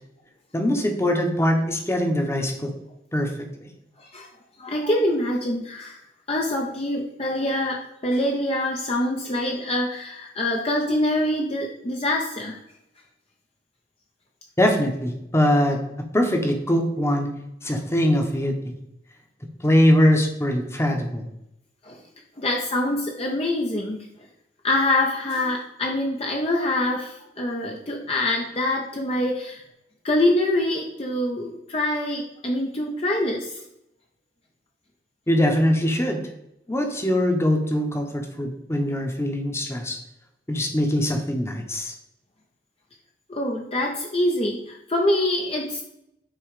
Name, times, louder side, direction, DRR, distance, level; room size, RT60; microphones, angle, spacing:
voice 1, 0.5-2.7 3.1-3.3 3.6-3.7 14.6-15.8 16.1-17.3 17.6-18.7 19.6-21.3 35.3-36.2 36.7-40.0 40.5-41.9, left 1 dB, 15° left, 3 dB, 1.0 m, -22 dB
voice 2, 4.0-4.3 4.6-6.0 6.3-12.6 21.8-22.0 22.4-24.1 24.6-29.6 30.0-33.6 36.8-36.9 43.3-45.8, left 1 dB, 35° left, 0 dB, 0.7 m, -25 dB
9.1 x 3.1 x 4.8 m, 0.81 s
head